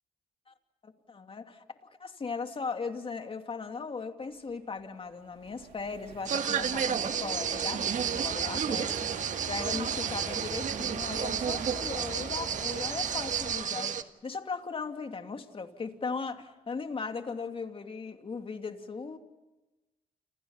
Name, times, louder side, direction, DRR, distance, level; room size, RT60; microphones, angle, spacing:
voice 1, 0.8-1.6 2.0-13.9 14.2-19.2, left 4 dB, 40° left, 6 dB, 2.8 m, -38 dB
sound 1, 4.8-4.9 5.0-13.5, right 8 dB, 90° right, 3.5 m, -43 dB
sound 2, 6.3-14.0, right 7 dB, 60° right, 1.6 m, -31 dB
Idling / Accelerating revving vroom, 6.4-13.5, left 1 dB, 10° left, 5.5 m, -47 dB
30.0 x 28.0 x 5.7 m, 1.1 s
cardioid pair, 75°, 15 cm